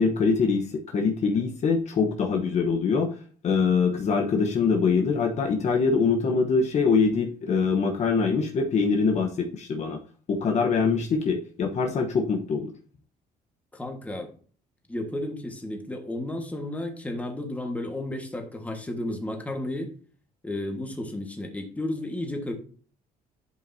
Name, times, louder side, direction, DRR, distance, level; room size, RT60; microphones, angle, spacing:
voice 1, 0.0-3.1 3.4-10.0 10.3-12.7, left 5 dB, 45° left, 2 dB, 1.1 m, -24 dB
voice 2, 13.7-14.3 14.9-19.9 20.4-22.5, left 1 dB, 10° left, 3 dB, 1.6 m, -33 dB
11.0 x 5.3 x 2.8 m, 0.42 s
cardioid pair, 120°, 16 cm